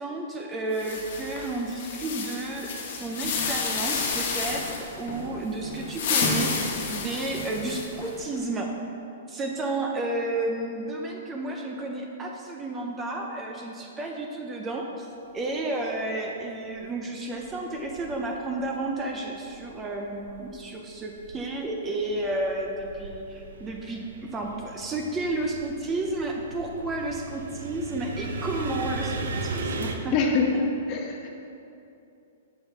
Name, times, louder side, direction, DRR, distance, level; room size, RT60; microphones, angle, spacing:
voice 1, 0.0-8.7 9.3-30.1, right 2 dB, 15° right, 1 dB, 0.4 m, -32 dB
sound 1, 0.7-4.9 5.8-8.1, left 5 dB, 55° left, 0.9 m, -31 dB
sound 2, 3.2-8.4, left 1 dB, 85° left, 1.3 m, -37 dB
sound 3, 16.7-16.8 17.4-19.1 19.4-20.7 21.1-29.9, right 3 dB, 85° right, 0.6 m, -37 dB
voice 2, 30.1-30.5 30.9-31.3, left 5 dB, 30° left, 1 dB, 0.7 m, -24 dB
7.1 x 3.5 x 5.3 m, 2.8 s
hypercardioid pair, 160°, 0 cm